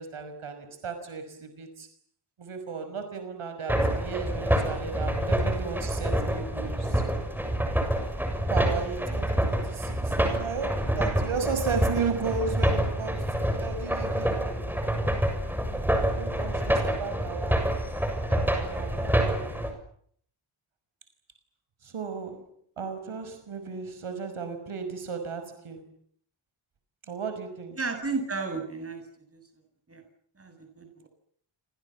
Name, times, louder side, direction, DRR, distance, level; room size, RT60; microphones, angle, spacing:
voice 1, 0.0-1.9 2.4-7.0 8.5-15.1 16.2-17.7 18.3-19.7 21.8-22.4 22.8-25.9 27.1-27.8, right 5 dB, 80° right, 9 dB, 6.1 m, -35 dB
sound 1, 3.7-19.7, right 1 dB, 5° right, 7.1 m, -27 dB
voice 2, 27.8-29.0 29.3-29.4 29.9-30.0 30.4-31.1, right 4 dB, 30° right, 6 dB, 8.0 m, -33 dB
30.0 x 25.5 x 7.4 m, 0.64 s
wide cardioid pair, 150°, 49 cm